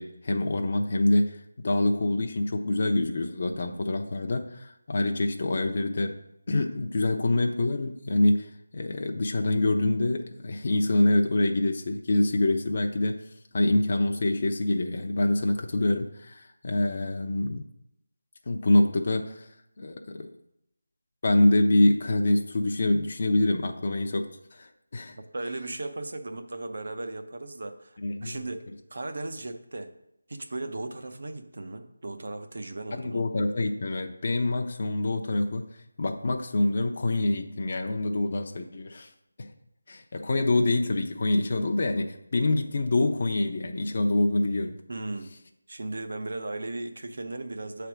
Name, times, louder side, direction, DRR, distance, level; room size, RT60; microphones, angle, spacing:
voice 1, 0.0-6.2 6.5-13.2 13.5-17.7 18.5-19.5 19.8-20.3 21.2-25.2 28.0-28.4 33.0-35.6 36.0-39.1 39.4-39.5 39.9-44.8, left 2 dB, 40° left, 3 dB, 0.6 m, -26 dB
voice 2, 25.3-28.6 28.9-29.9 30.3-33.2 44.9-45.3 45.7-47.9, right 2 dB, 60° right, 6 dB, 0.7 m, -36 dB
7.8 x 3.4 x 6.1 m, 0.79 s
figure-of-eight pair, 170°, 0 cm